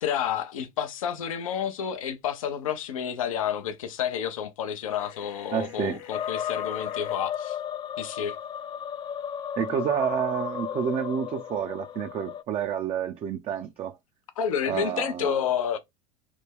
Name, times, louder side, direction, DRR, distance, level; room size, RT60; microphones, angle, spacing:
voice 1, 0.0-7.6 8.0-8.4 14.4-15.8, left 8 dB, 80° left, 0.5 m, -30 dB
sound 1, 4.9-7.2, left 10 dB, 65° left, 0.9 m, -46 dB
voice 2, 5.5-6.0 9.6-14.0 14.7-15.4, right 8 dB, 35° right, 0.4 m, -29 dB
sound 2, 6.1-12.4, left 9 dB, 25° left, 0.3 m, -34 dB
3.3 x 2.1 x 3.4 m
hypercardioid pair, 85°, 17 cm